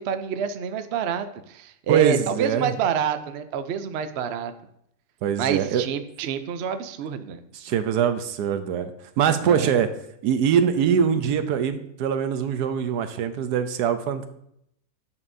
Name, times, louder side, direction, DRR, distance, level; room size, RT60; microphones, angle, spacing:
voice 1, 0.0-4.5 5.4-7.4 9.4-9.7, right 7 dB, 65° right, 9 dB, 0.6 m, -27 dB
voice 2, 1.9-2.7 5.2-5.8 7.5-8.9 9.2-9.9 10.2-14.3, right 8 dB, 80° right, 9 dB, 1.2 m, -23 dB
9.7 x 7.2 x 2.7 m, 0.74 s
omnidirectional pair, 1.7 m